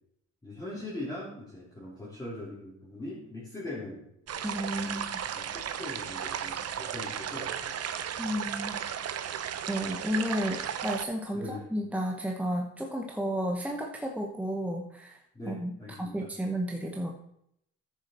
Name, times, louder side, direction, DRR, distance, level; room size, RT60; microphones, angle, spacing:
voice 1, 0.4-4.0 4.8-5.0 5.3-7.8 11.3-11.6 15.3-16.3, left 2 dB, 10° left, -8 dB, 3.2 m, -41 dB
sound 1, 4.3-11.0, right 8 dB, 55° right, 0.8 m, -35 dB
voice 2, 4.4-5.1 8.2-8.8 9.7-15.2 15.5-17.2, equal, 5° right, 1 dB, 1.0 m, -32 dB
10.0 x 6.7 x 4.3 m, 0.75 s
cardioid pair, 90°, 30 cm